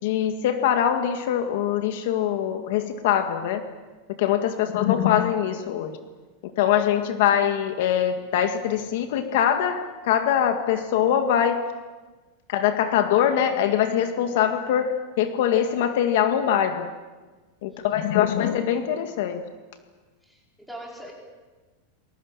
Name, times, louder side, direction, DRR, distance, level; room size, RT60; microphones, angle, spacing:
voice 1, 0.0-3.6 4.2-6.0 6.6-11.6 12.5-16.9 17.6-19.4, left 9 dB, 55° left, 7 dB, 1.9 m, -23 dB
voice 2, 17.7-18.2 20.2-21.1, right 1 dB, ahead, -1 dB, 4.8 m, -43 dB
29.0 x 22.0 x 7.4 m, 1.3 s
supercardioid pair, 170°, 0 cm